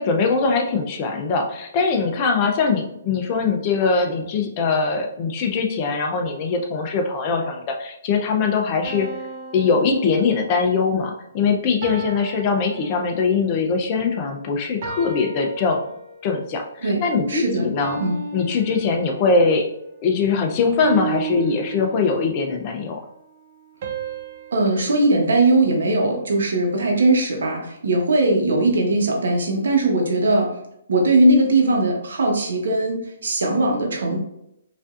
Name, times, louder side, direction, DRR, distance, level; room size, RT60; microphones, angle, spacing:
voice 1, 0.0-9.1 9.5-15.8 16.2-18.0 18.3-19.6 20.0-23.0, left 4 dB, 30° left, 3 dB, 0.5 m, -22 dB
sound 1, 8.8-10.8 11.8-13.5 14.8-16.4 17.8-19.5 20.8-22.4 23.8-26.1, right 5 dB, 45° right, 0.5 m, -34 dB
voice 2, 17.3-17.7 18.0-18.2 24.5-30.5 30.9-34.2, right 2 dB, 80° right, 1 dB, 1.0 m, -19 dB
5.0 x 2.6 x 2.5 m, 0.81 s
hypercardioid pair, 160°, 0 cm